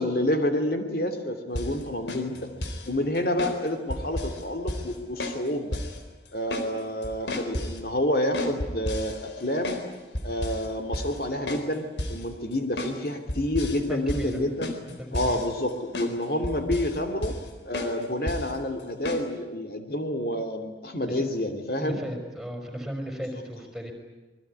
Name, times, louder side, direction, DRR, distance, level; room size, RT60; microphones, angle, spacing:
voice 1, 0.0-2.5 2.8-5.8 6.3-9.8 10.2-14.7 15.1-17.3 17.7-22.0, left 1 dB, 55° left, 6 dB, 2.8 m, -28 dB
sound 1, 1.6-1.8 2.1-2.9 3.4-3.6 3.9-4.4 4.7-4.9 5.2-5.4 5.7-6.0 6.3-6.7 7.0-7.8 8.3-9.9 10.1-10.7 10.9-11.2 11.5-11.7 12.0-12.2 12.8-13.0 13.3-13.8 14.1-14.3 14.6-15.7 15.9-16.1 16.4-17.0 17.2-17.5 17.7-17.9 18.3-18.5 19.0-19.2, left 1 dB, 80° left, 3.9 m, -32 dB
voice 2, 13.9-14.4 15.0-15.4 21.0-21.1 21.8-23.9, equal, ahead, 4 dB, 4.8 m, -35 dB
27.0 x 21.5 x 9.6 m, 1.2 s
head